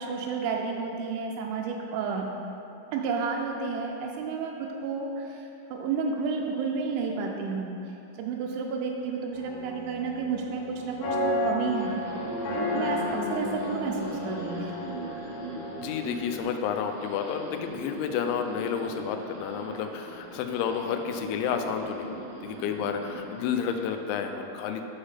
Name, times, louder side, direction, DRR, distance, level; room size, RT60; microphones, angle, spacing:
voice 1, 0.0-2.3 2.9-12.1 12.5-14.8, right 5 dB, 85° right, 1 dB, 2.9 m, -31 dB
sound 1, 9.3-16.4, left 1 dB, 65° left, 2.5 m, -33 dB
sound 2, 11.7-23.9, right 1 dB, 60° right, 1.2 m, -39 dB
voice 2, 15.8-24.8, left 7 dB, 85° left, 5 dB, 2.9 m, -31 dB
9.6 x 3.4 x 5.6 m, 2.9 s
omnidirectional pair, 5.4 m